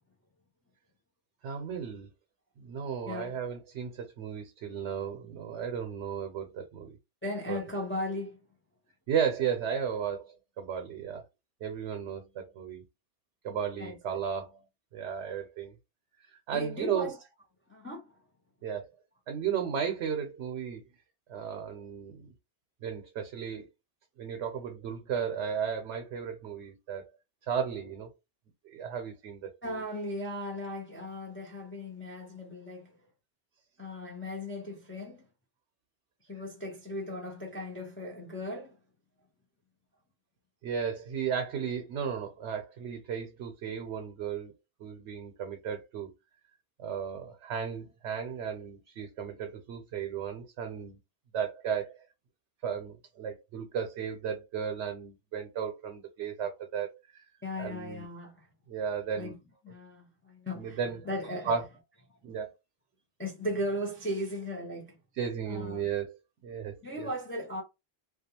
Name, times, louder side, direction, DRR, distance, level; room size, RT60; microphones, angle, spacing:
voice 1, 1.4-2.1 2.6-7.0 7.5-7.6 9.1-11.2 11.6-12.8 13.4-14.6 14.9-15.7 16.2-17.1 18.6-18.9 19.3-20.8 21.3-22.3 22.8-23.7 24.2-27.1 27.5-28.1 28.7-29.8 40.6-44.5 44.8-46.1 46.8-51.0 51.3-52.0 52.6-57.3 57.6-58.1 58.7-59.3 60.5-61.0 61.5-61.6 62.2-62.5 65.2-66.2 66.4-67.1, right 7 dB, 85° right, 0.9 m, -34 dB
voice 2, 3.1-3.4 7.2-8.4 13.8-14.2 16.5-17.2 17.7-18.1 29.6-33.0 33.8-35.2 36.3-38.8 57.4-58.5 59.2-59.4 59.6-61.5 63.2-65.0 65.5-65.9 66.8-67.6, left 1 dB, 15° left, 0.5 m, -37 dB
2.3 x 2.3 x 2.8 m
omnidirectional pair, 1.1 m